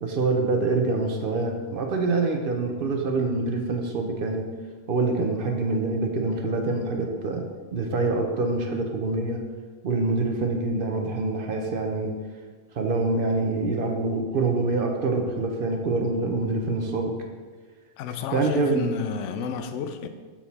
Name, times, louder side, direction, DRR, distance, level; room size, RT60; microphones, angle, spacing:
voice 1, 0.0-4.4 4.9-7.4 7.7-9.4 9.8-12.1 12.7-17.1 18.3-19.0, right 3 dB, 50° right, 3 dB, 0.7 m, -25 dB
voice 2, 18.0-20.1, left 7 dB, 65° left, 8 dB, 0.8 m, -31 dB
7.4 x 4.3 x 4.1 m, 1.4 s
omnidirectional pair, 1.5 m